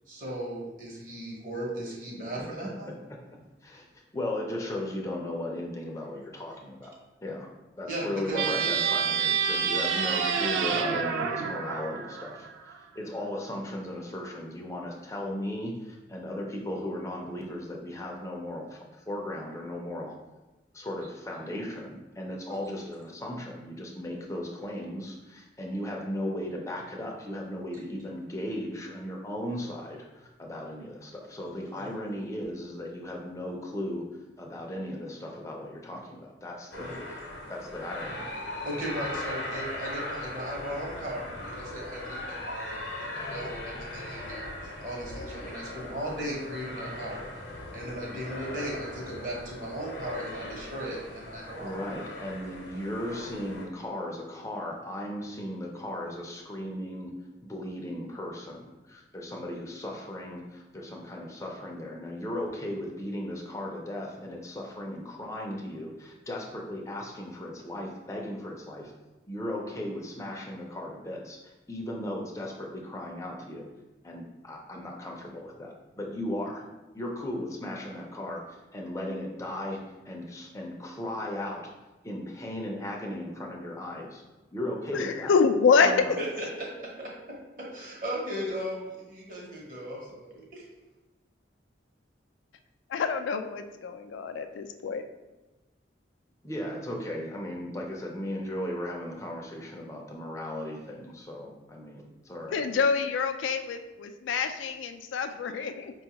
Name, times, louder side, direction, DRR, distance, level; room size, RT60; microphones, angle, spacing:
voice 1, 0.1-2.9 7.9-8.7 22.5-22.6 24.1-24.2 31.8-31.9 36.7-37.0 38.6-47.2 47.7-51.7 86.2-87.1 87.6-90.6, right 1 dB, 45° right, -3 dB, 0.9 m, -37 dB
voice 2, 2.4-3.9 4.1-7.0 7.2-7.5 7.8-20.1 20.7-34.0 34.4-36.9 37.5-38.5 51.6-57.1 57.4-68.9 69.3-73.7 74.0-76.6 76.9-79.8 80.1-81.6 82.0-84.2 84.5-85.3 85.8-86.2 96.4-102.6, left 1 dB, 15° left, -1 dB, 0.4 m, -36 dB
sound 1, 8.3-12.8, right 6 dB, 85° right, 0.4 m, -28 dB
sound 2, 36.7-53.7, left 1 dB, 65° left, 0.7 m, -39 dB
voice 3, 85.0-85.9 92.9-95.0 102.5-105.9, left 5 dB, 85° left, 8 dB, 0.3 m, -26 dB
5.1 x 2.3 x 2.8 m, 1.1 s
head